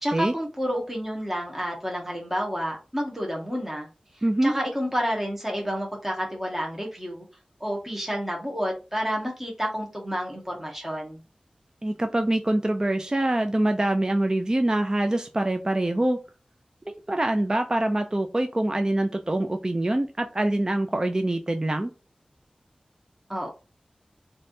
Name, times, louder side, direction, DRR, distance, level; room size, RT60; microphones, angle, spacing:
voice 1, 0.0-3.9 4.1-7.2 7.6-11.2 23.3-23.5, equal, 10° right, 1.2 m, -30 dB
voice 2, 4.2-4.5 11.8-16.2 17.1-21.9, right 1 dB, 30° right, 0.4 m, -24 dB
3.2 x 2.7 x 2.6 m
wide cardioid pair, 45°, 2 cm